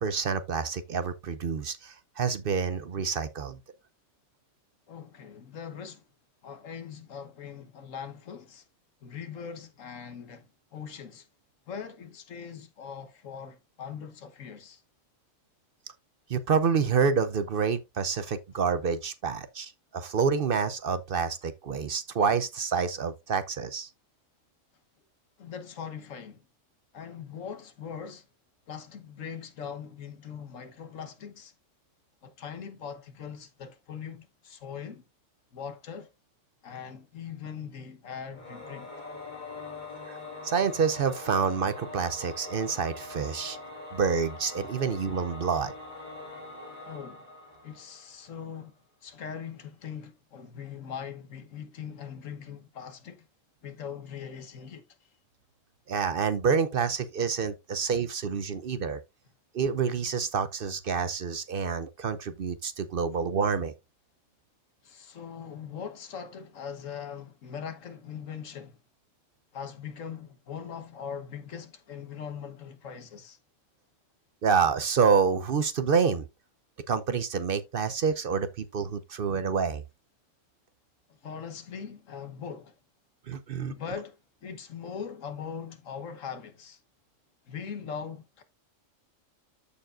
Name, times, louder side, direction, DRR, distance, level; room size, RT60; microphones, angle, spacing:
voice 1, 0.0-3.6 16.3-23.9 40.1-40.2 40.4-43.6 43.9-45.7 55.9-59.0 59.5-63.7 74.4-76.3 76.9-79.8 83.3-83.7, right 6 dB, 55° right, 0.7 m, -28 dB
voice 2, 4.9-6.0 6.4-8.6 9.0-11.3 11.7-14.8 25.4-26.5 26.9-28.3 28.7-31.5 32.2-35.0 35.5-36.1 36.6-38.9 46.8-47.3 47.6-48.7 49.0-53.3 53.6-55.1 64.8-68.8 69.5-73.4 81.1-82.7 83.7-86.8 87.5-88.4, left 7 dB, 85° left, 1.5 m, -41 dB
Singing / Musical instrument, 38.3-48.4, left 2 dB, 35° left, 2.0 m, -43 dB
13.5 x 4.6 x 2.4 m
omnidirectional pair, 1.3 m